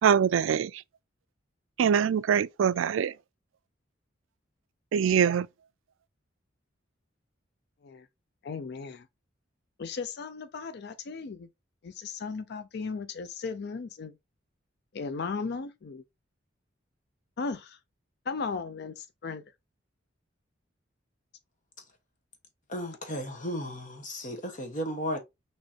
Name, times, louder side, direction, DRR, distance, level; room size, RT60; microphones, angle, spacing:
voice 1, 0.0-0.7 1.8-3.1 4.9-5.5, right 7 dB, 85° right, 0.3 m, -23 dB
voice 2, 8.4-9.1 9.8-11.5 11.8-14.2 14.9-16.0 17.4-17.8 18.3-19.4, left 4 dB, 55° left, 0.4 m, -36 dB
voice 3, 22.7-25.2, equal, 40° left, 1.3 m, -34 dB
6.2 x 3.1 x 2.8 m
head